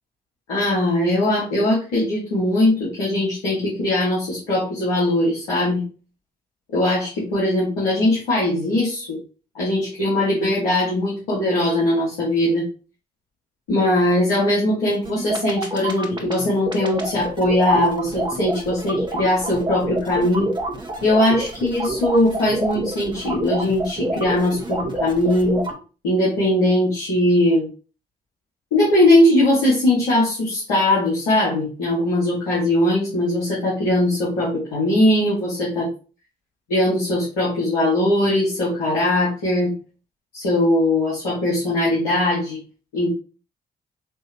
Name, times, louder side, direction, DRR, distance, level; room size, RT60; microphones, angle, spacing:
voice 1, 0.5-5.8 6.7-9.2 9.5-12.6 13.7-20.5 21.0-25.6 26.0-27.6 28.7-35.9 36.7-39.7 40.3-42.6 42.9-43.1, left 1 dB, 90° left, -8 dB, 1.7 m, -20 dB
sound 1, 14.9-25.7, right 2 dB, 25° right, 1.5 m, -27 dB
5.4 x 3.2 x 2.9 m, 0.34 s
hypercardioid pair, 45°, 20 cm